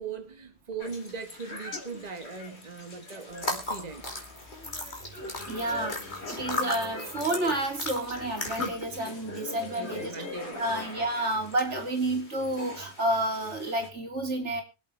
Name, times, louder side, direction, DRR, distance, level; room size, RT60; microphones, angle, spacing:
voice 1, 0.0-4.0 9.8-10.6, right 5 dB, 35° right, 1.6 m, -39 dB
sound 1, 0.8-13.9, left 2 dB, 70° left, 2.7 m, -42 dB
sound 2, 3.3-8.9, left 2 dB, 45° left, 3.2 m, -35 dB
voice 2, 5.5-6.0 6.3-10.2 10.5-14.6, right 1 dB, 90° right, 3.3 m, -30 dB
24.0 x 8.2 x 3.4 m
omnidirectional pair, 1.2 m